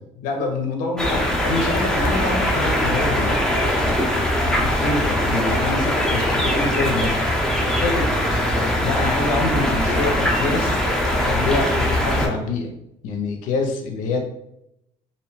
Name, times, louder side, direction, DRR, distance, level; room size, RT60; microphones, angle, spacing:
voice 1, 0.2-7.1 7.7-8.1 8.5-10.8 11.2-12.7 13.0-14.2, left 3 dB, 85° left, 3 dB, 0.6 m, -26 dB
sound 1, 1.0-12.3, left 1 dB, 5° left, 0.7 m, -21 dB
2.6 x 2.1 x 3.1 m, 0.81 s
cardioid pair, 85°, 13 cm